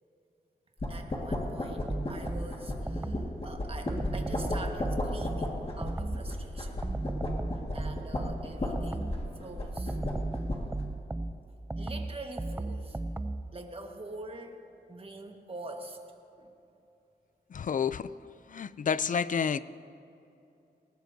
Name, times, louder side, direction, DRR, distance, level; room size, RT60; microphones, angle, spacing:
sound 1, 0.8-10.9, left 1 dB, 35° left, 1.8 m, -35 dB
voice 1, 0.9-6.8 7.7-10.0 11.8-13.0 13.5-14.6 14.9-16.0 16.4-16.5, right 2 dB, 35° right, 3 dB, 1.6 m, -45 dB
sound 2, 1.9-3.4 3.9-6.4 6.8-9.3 9.8-13.5, right 2 dB, 10° right, 0.5 m, -35 dB
voice 2, 17.5-18.1 18.5-19.6, left 7 dB, 50° left, 16 dB, 0.4 m, -29 dB
19.5 x 19.0 x 2.7 m, 2.7 s
wide cardioid pair, 85°, 17 cm